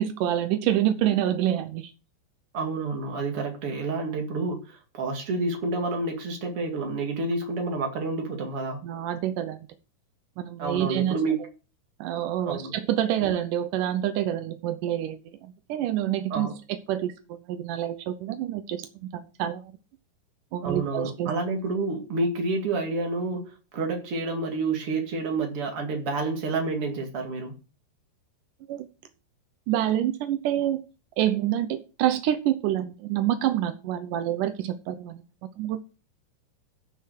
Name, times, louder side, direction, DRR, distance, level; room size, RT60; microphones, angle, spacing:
voice 1, 0.0-1.9 8.8-9.6 10.4-11.2 12.0-16.5 16.9-19.7 20.5-21.3 28.7-28.9 29.7-30.8 31.2-35.2 35.6-35.8, right 12 dB, 90° right, 1.8 m, -27 dB
voice 2, 2.5-8.8 10.6-11.4 12.5-12.7 16.3-16.5 20.6-27.5, right 3 dB, 40° right, 2.5 m, -29 dB
10.0 x 5.7 x 6.3 m
omnidirectional pair, 4.9 m